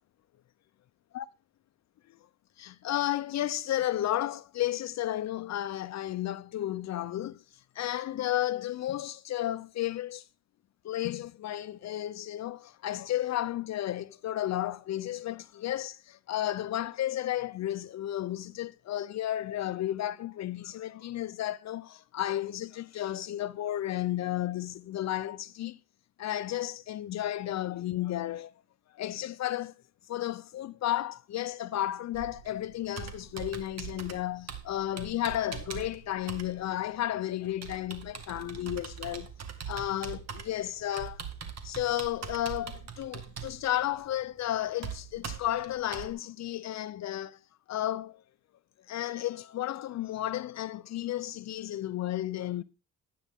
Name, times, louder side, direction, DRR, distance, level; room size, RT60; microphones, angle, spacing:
voice 1, 2.6-7.4 7.8-10.2 10.8-25.8 26.2-28.5 28.9-29.7 30.1-39.3 39.7-41.2 41.6-47.4 47.7-48.2 48.9-52.6, left 13 dB, 65° left, 0.7 m, -33 dB
Computer keyboard, 32.1-46.1, right 7 dB, 60° right, 2.0 m, -42 dB
12.0 x 9.3 x 3.7 m
cardioid pair, 90°, 30 cm